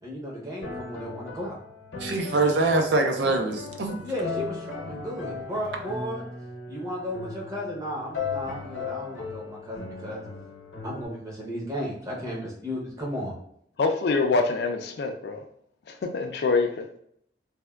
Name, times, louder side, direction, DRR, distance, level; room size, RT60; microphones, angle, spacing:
voice 1, 0.0-1.6 4.0-6.2 6.7-10.2 10.8-13.4, equal, 20° right, 0.7 m, -34 dB
sound 1, 0.6-11.0, left 4 dB, 85° left, 0.8 m, -37 dB
voice 2, 2.0-4.0, right 2 dB, 70° right, 0.4 m, -24 dB
voice 3, 13.8-15.4 15.9-17.0, left 3 dB, 60° left, 0.3 m, -25 dB
3.3 x 2.1 x 2.2 m
head